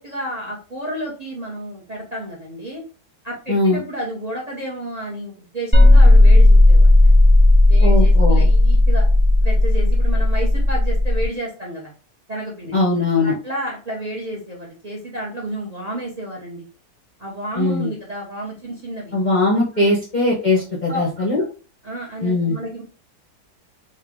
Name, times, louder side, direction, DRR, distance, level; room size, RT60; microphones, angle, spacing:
voice 1, 0.0-2.8 3.2-7.2 7.7-9.0 9.4-11.9 12.3-12.7 13.2-16.7 17.2-19.1 19.7-20.0 20.9-21.2 21.8-22.8, right 1 dB, 30° right, -2 dB, 0.7 m, -31 dB
voice 2, 3.5-3.8 7.8-8.5 12.7-13.3 17.6-17.9 19.1-21.4 22.2-22.6, left 2 dB, 40° left, -3 dB, 0.7 m, -20 dB
sound 1, 5.7-11.3, left 1 dB, 5° left, 1.1 m, -12 dB
3.7 x 2.7 x 3.5 m, 0.36 s
omnidirectional pair, 1.9 m